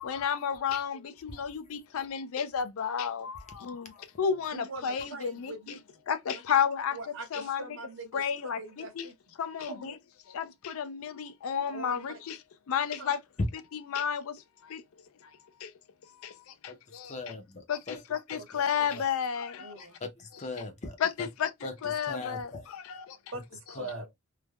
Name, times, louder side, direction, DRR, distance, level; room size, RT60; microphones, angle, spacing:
voice 1, 0.0-5.8 6.1-7.0 7.3-7.8 8.1-9.1 9.4-10.0 10.3-12.4 12.7-13.2 13.7-14.8 15.2-15.3 15.6-15.7 16.1-17.2 17.7-19.8 21.0-21.5 21.8-23.2, left 7 dB, 80° left, 0.4 m, -32 dB
voice 2, 4.0-4.3 16.7-16.8 17.1-18.0 18.9-19.0 20.2-21.3 21.6-21.7 22.0-22.7 23.8-24.0, left 2 dB, 35° left, 0.6 m, -40 dB
voice 3, 4.5-5.8 6.3-6.4 6.9-9.1 9.7-10.0 11.7-12.2 13.0-13.1 18.4-18.5 18.9-19.1 19.6-20.0 23.3-24.1, right 2 dB, 65° right, 0.6 m, -43 dB
3.2 x 2.1 x 2.2 m
head